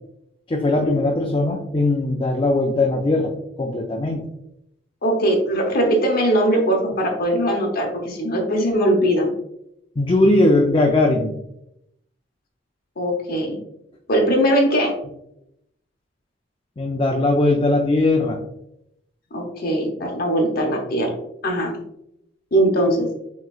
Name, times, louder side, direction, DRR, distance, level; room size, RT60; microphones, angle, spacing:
voice 1, 0.5-3.3 3.6-4.3 10.0-11.4 16.8-18.4, left 2 dB, 25° left, 1 dB, 0.4 m, -19 dB
voice 2, 5.0-9.3 13.0-13.6 14.1-14.9 19.3-21.1 21.4-21.8 22.5-23.1, right 1 dB, 55° left, 1 dB, 0.9 m, -20 dB
6.0 x 3.1 x 2.3 m, 0.79 s
head